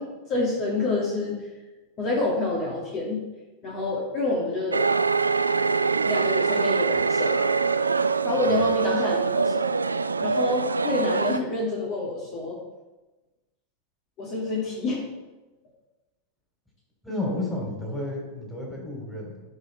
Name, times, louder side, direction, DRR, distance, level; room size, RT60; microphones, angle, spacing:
voice 1, 0.0-1.5 2.0-3.2 3.6-4.8 6.0-7.5 8.2-9.8 10.2-12.6 14.2-15.0, left 2 dB, 40° left, -4 dB, 2.3 m, -28 dB
sound 1, 4.7-11.4, right 4 dB, 80° right, 0.3 m, -24 dB
voice 2, 17.0-19.4, left 1 dB, 5° left, -2 dB, 3.4 m, -32 dB
16.0 x 5.5 x 3.4 m, 1.1 s
figure-of-eight pair, 90°, 0 cm